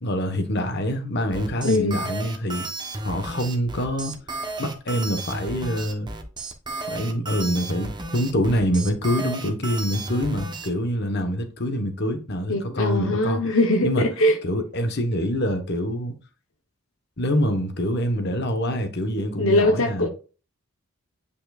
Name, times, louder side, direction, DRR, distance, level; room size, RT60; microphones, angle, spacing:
voice 1, 0.0-2.6 3.0-4.1 4.6-6.1 6.9-13.4 13.8-14.1 14.4-16.2 17.2-20.1, equal, 50° left, 1.2 m, -25 dB
sound 1, 1.3-10.7, right 3 dB, 20° right, 1.0 m, -33 dB
voice 2, 1.6-2.0 12.5-14.4 19.4-20.1, left 1 dB, 70° left, 1.0 m, -21 dB
9.1 x 5.4 x 2.4 m
head